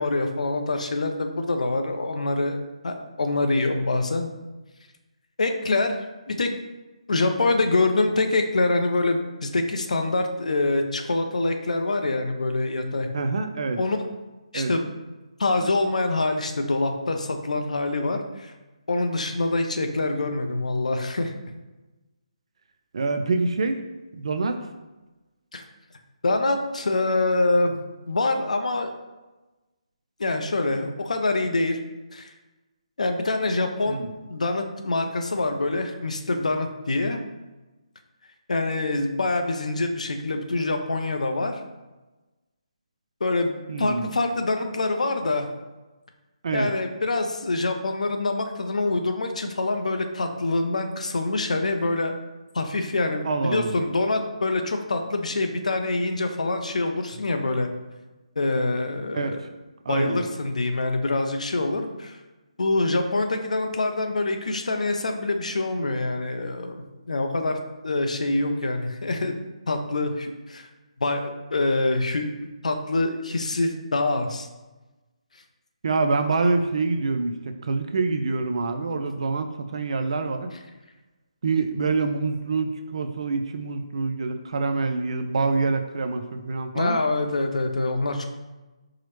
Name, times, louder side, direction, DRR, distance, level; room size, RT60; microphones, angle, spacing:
voice 1, 0.0-2.6 2.8-4.3 5.4-6.0 6.3-6.5 7.1-13.1 13.8-14.0 14.5-14.9 15.4-18.5 18.9-21.3 25.5-25.6 26.2-27.8 28.1-28.9 30.2-31.8 32.1-32.3 33.0-34.0 34.3-37.2 38.5-41.6 43.2-45.5 46.5-52.1 52.5-57.7 58.4-59.4 59.9-62.2 62.6-69.4 69.7-70.7 71.0-72.3 72.6-74.5 86.7-88.2, left 2 dB, 80° left, 5 dB, 0.5 m, -25 dB
voice 2, 13.1-13.8 14.5-14.7 22.9-23.8 24.1-24.6 33.9-34.1 43.7-44.1 46.4-46.7 53.2-53.8 59.1-59.4 59.9-60.2 75.8-80.5 81.4-87.0, right 3 dB, 55° right, 7 dB, 0.3 m, -26 dB
4.7 x 2.0 x 3.0 m, 1.1 s
hypercardioid pair, 165°, 4 cm